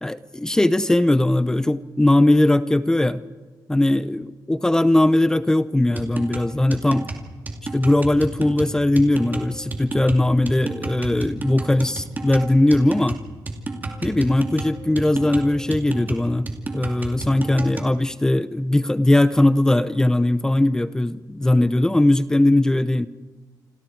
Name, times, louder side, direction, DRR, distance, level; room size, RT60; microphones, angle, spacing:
voice 1, 0.0-3.2 3.7-7.1 7.7-13.2 14.0-16.5 16.7-23.1, left 1 dB, 10° left, 14 dB, 0.6 m, -19 dB
sound 1, 6.0-17.9, right 2 dB, 25° right, 2.5 m, -31 dB
28.0 x 27.5 x 4.6 m, 1.4 s
wide cardioid pair, 175°, 7 cm